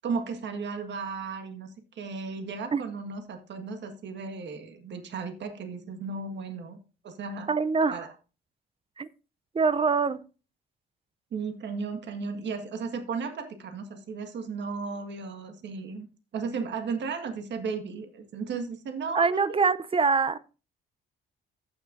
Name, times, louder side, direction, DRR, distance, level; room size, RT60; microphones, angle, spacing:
voice 1, 0.0-1.7 1.9-6.8 7.0-7.5 7.9-8.1 11.3-16.1 16.3-19.6, right 5 dB, 65° right, 1.6 m, -35 dB
voice 2, 7.5-8.0 9.0-9.1 9.5-10.2 19.2-20.4, right 4 dB, 30° right, 0.5 m, -24 dB
14.5 x 6.3 x 2.6 m
cardioid pair, 90°, 20 cm